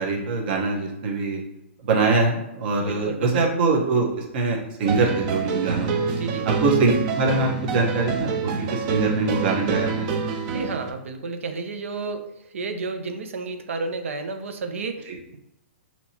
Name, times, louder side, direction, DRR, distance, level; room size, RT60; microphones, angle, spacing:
voice 1, 0.0-1.4 1.8-6.0 6.6-10.1 15.1-15.2, right 3 dB, 50° right, -1 dB, 1.1 m, -23 dB
voice 2, 2.8-3.5 6.2-6.5 10.5-12.3 12.5-15.4, right 4 dB, 85° right, 7 dB, 0.7 m, -31 dB
sound 1, 4.8-10.9, right 5 dB, 35° right, 0.5 m, -27 dB
5.9 x 2.9 x 2.9 m, 0.86 s
hypercardioid pair, 155°, 7 cm